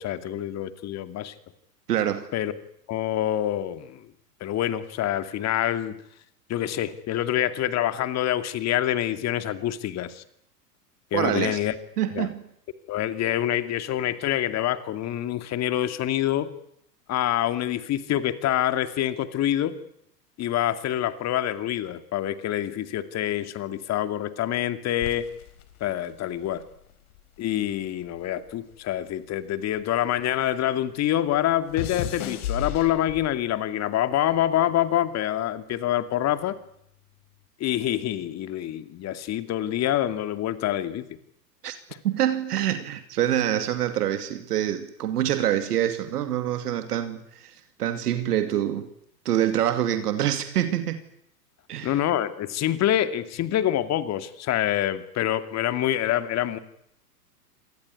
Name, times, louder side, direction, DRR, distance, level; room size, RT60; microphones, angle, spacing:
voice 1, 0.0-1.3 2.3-2.5 2.9-4.1 4.4-6.0 6.5-10.2 11.1-11.7 12.1-12.3 12.9-16.5 17.1-19.8 20.4-25.3 25.8-26.6 27.4-36.6 37.6-41.1 51.8-56.6, left 12 dB, 30° left, 2.4 m, -26 dB
voice 2, 1.9-2.3 11.1-11.6 12.0-12.4 41.6-41.7 42.0-47.5 47.8-48.9 49.2-51.0 51.7-51.9, right 11 dB, 70° right, 2.5 m, -25 dB
sound 1, 25.0-27.5 27.8-30.4 30.7-33.5 34.3-34.6, left 10 dB, 60° left, 3.7 m, -36 dB
26.5 x 19.5 x 9.7 m
hypercardioid pair, 105°, 48 cm